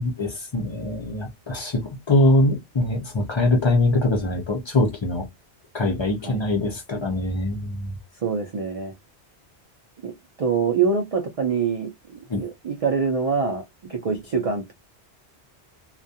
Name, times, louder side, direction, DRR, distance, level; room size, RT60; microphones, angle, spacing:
voice 1, 0.0-5.3 5.7-7.9 12.3-12.4, left 2 dB, 45° left, 0.4 m, -23 dB
voice 2, 8.2-8.9 10.0-14.7, right 5 dB, 65° right, 0.3 m, -25 dB
2.3 x 2.1 x 2.6 m
omnidirectional pair, 1.1 m